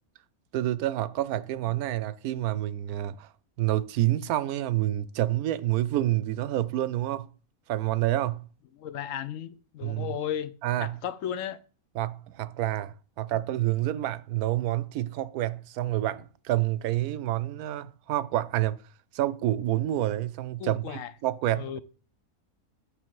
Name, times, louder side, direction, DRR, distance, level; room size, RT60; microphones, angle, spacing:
voice 1, 0.5-3.3 3.6-7.3 7.7-8.5 9.8-10.1 10.6-11.0 11.9-18.8 19.1-21.8, right 14 dB, 90° right, 1.1 m, -28 dB
voice 2, 8.8-11.6 20.6-21.1 21.5-21.8, left 9 dB, 70° left, 1.0 m, -35 dB
8.3 x 5.7 x 4.7 m
omnidirectional pair, 1.5 m